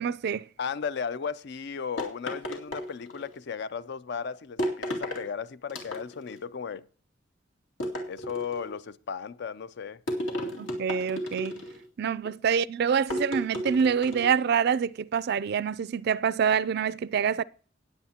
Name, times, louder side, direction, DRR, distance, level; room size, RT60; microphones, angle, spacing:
voice 1, 0.0-0.5 10.6-11.6 12.0-17.4, right 7 dB, 55° right, 0.4 m, -26 dB
voice 2, 0.6-6.9 8.1-10.0 12.2-12.4, left 6 dB, 60° left, 0.5 m, -35 dB
sound 1, 2.0-3.4 4.6-5.3 5.7-6.4 7.8-8.7 10.1-11.9 13.1-14.4, equal, 85° left, 2.5 m, -33 dB
19.0 x 7.8 x 2.9 m
head